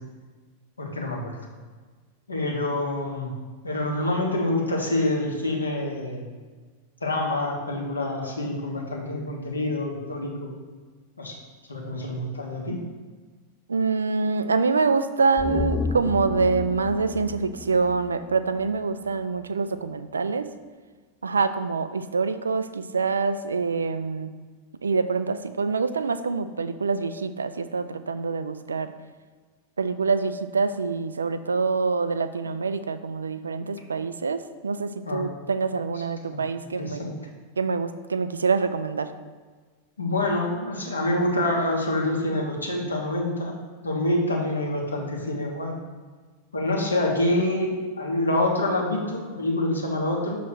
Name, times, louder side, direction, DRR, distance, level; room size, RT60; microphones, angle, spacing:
voice 1, 0.8-1.4 2.3-3.3 3.6-6.2 7.0-10.5 11.2-11.3 11.7-12.8 35.0-35.3 36.3-36.4 36.7-37.1 40.0-43.5 43.8-45.7 46.5-50.4, left 1 dB, 80° left, -2 dB, 1.2 m, -26 dB
voice 2, 13.7-20.5 21.2-24.3 24.8-28.9 29.8-37.1 37.6-39.1, right 4 dB, 75° right, 12 dB, 0.3 m, -25 dB
sound 1, 15.4-18.8 19.1-19.2, left 5 dB, 15° left, 0.4 m, -32 dB
6.4 x 3.1 x 5.9 m, 1.4 s
figure-of-eight pair, 90°, 0 cm